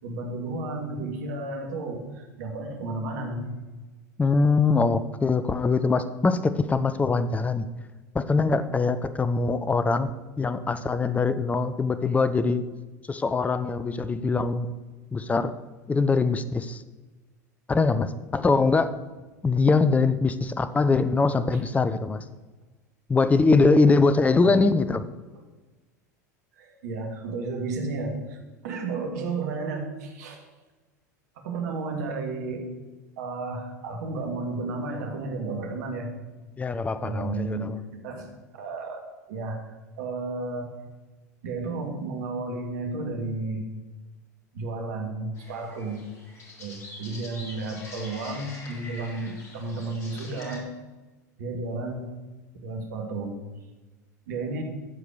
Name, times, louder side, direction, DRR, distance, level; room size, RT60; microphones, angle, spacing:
voice 1, 0.0-3.5 21.5-21.6 24.4-24.6 26.6-30.4 31.4-32.7 33.2-36.1 37.0-37.7 38.0-39.0 39.3-40.7 41.4-43.7 44.5-46.0 46.6-50.7 51.4-52.1 52.6-53.3 54.3-54.6, right 3 dB, 65° right, 2 dB, 2.4 m, -32 dB
voice 2, 4.2-7.7 8.1-10.1 10.4-12.6 13.1-14.7 15.1-15.5 15.9-16.8 17.7-19.0 19.4-22.2 23.1-25.0 36.6-37.8, left 4 dB, 15° left, 12 dB, 0.7 m, -22 dB
sound 1, 45.4-50.6, left 2 dB, 30° left, 3.8 m, -45 dB
14.0 x 5.0 x 6.9 m, 1.2 s
hypercardioid pair, 85°, 9 cm